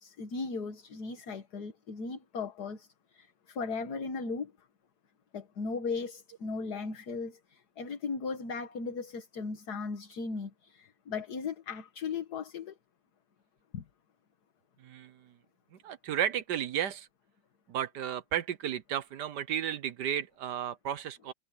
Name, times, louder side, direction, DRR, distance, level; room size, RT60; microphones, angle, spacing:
voice 1, 0.0-2.9 3.1-4.5 5.3-12.8 13.7-13.8, left 4 dB, 55° left, 2.0 m, -37 dB
voice 2, 14.8-15.3 15.8-17.1 17.7-21.3, right 10 dB, 65° right, 1.3 m, -33 dB
omnidirectional pair, 2.1 m